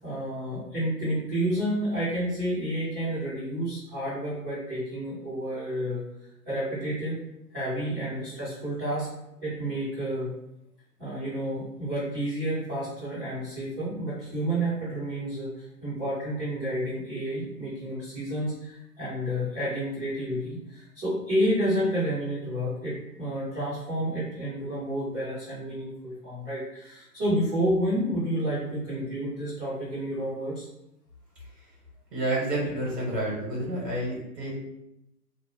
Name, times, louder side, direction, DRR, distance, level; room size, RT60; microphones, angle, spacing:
voice 1, 0.0-6.0 6.5-7.2 7.5-9.1 9.4-10.3 11.0-30.7, equal, 10° right, -14 dB, 0.4 m, -30 dB
voice 2, 32.1-34.5, right 1 dB, 80° right, -5 dB, 1.5 m, -29 dB
2.9 x 2.1 x 2.8 m, 0.86 s
figure-of-eight pair, 120°, 48 cm